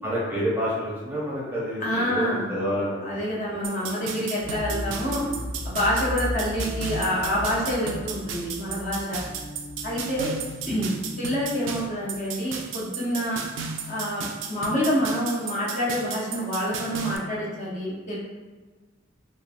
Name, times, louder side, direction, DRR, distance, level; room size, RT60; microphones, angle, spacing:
voice 1, 0.0-3.4 3.8-3.9 4.5-4.6, equal, 10° right, -7 dB, 0.7 m, -29 dB
voice 2, 1.8-2.5 3.0-5.2 5.6-9.2 9.8-10.3 10.7-13.4 13.9-18.2, equal, 40° left, -7 dB, 0.8 m, -27 dB
sound 1, 3.6-17.2, right 6 dB, 70° right, 0.3 m, -35 dB
sound 2, 4.4-12.2 12.5-12.6, equal, 70° left, 0.8 m, -36 dB
sound 3, 4.7-5.5 6.6-11.7, right 1 dB, 25° left, 0.3 m, -43 dB
2.9 x 2.3 x 2.5 m, 1.4 s
head